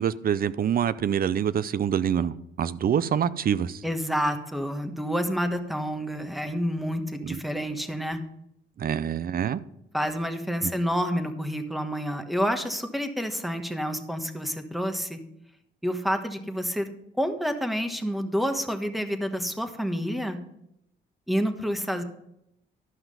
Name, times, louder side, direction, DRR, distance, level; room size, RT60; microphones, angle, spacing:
voice 1, 0.0-3.8 7.2-7.4 8.8-9.6 10.6-10.7, right 8 dB, 50° right, 17 dB, 0.6 m, -26 dB
voice 2, 3.8-8.2 9.9-15.2 15.8-16.9 17.2-20.4 21.3-22.0, equal, ahead, 7 dB, 1.2 m, -28 dB
12.5 x 5.8 x 5.4 m, 0.79 s
cardioid pair, 90°, 20 cm